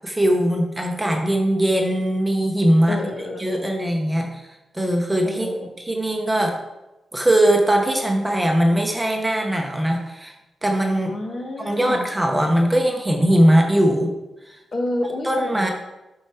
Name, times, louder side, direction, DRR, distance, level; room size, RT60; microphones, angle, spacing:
voice 1, 0.0-3.0 3.4-4.4 4.7-5.5 5.8-6.5 7.1-10.3 10.6-11.1 11.6-14.1 14.5-14.6 15.2-15.7, right 1 dB, 10° right, 2 dB, 0.8 m, -20 dB
voice 2, 2.9-3.7 5.2-5.6 11.1-12.0 14.7-15.7, left 1 dB, 40° left, 2 dB, 1.2 m, -29 dB
7.3 x 4.7 x 4.7 m, 1.0 s
wide cardioid pair, 120°, 0 cm